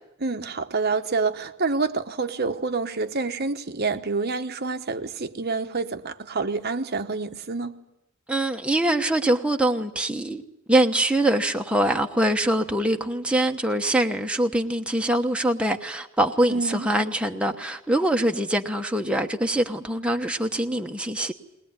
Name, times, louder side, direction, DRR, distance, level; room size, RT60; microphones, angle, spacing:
voice 1, 0.2-7.7 16.5-16.9, right 4 dB, 45° right, 1.1 m, -27 dB
voice 2, 8.3-10.4 10.7-21.3, right 1 dB, 5° right, 1.0 m, -23 dB
21.0 x 21.0 x 9.6 m
head